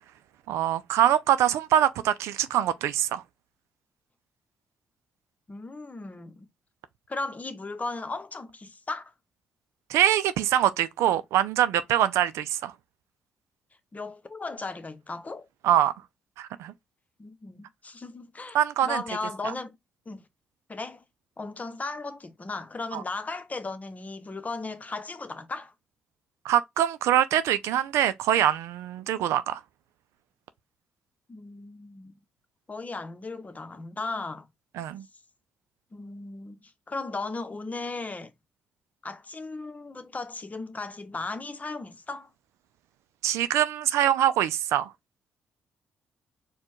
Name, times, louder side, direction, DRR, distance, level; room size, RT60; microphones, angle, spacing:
voice 1, 0.5-3.2 9.9-12.7 15.6-15.9 16.4-16.7 18.5-19.0 22.9-23.0 26.4-29.6 34.8-35.0 43.2-44.9, right 11 dB, 75° right, 0.4 m, -24 dB
voice 2, 5.5-6.5 7.1-9.1 13.9-15.5 17.2-18.6 18.8-19.8 20.1-20.2 20.7-21.0 21.4-25.7 31.3-32.2 32.7-34.5 35.9-38.3 39.0-42.3, left 3 dB, 30° left, 0.9 m, -36 dB
4.4 x 2.3 x 4.4 m
hypercardioid pair, 45°, 5 cm